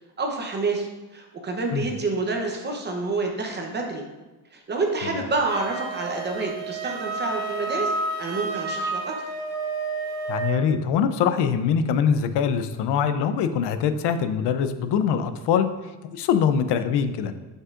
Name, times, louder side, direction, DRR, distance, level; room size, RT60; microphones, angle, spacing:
voice 1, 0.2-4.0 4.5-7.9 8.2-9.1, right 3 dB, 25° right, 1 dB, 0.8 m, -28 dB
Wind instrument woodwind instrument, 5.5-10.7, right 3 dB, 60° right, 1.2 m, -30 dB
voice 2, 10.3-15.7 16.1-17.3, left 7 dB, 75° left, 10 dB, 0.6 m, -23 dB
9.6 x 5.5 x 2.5 m, 1.2 s
cardioid pair, 170°, 41 cm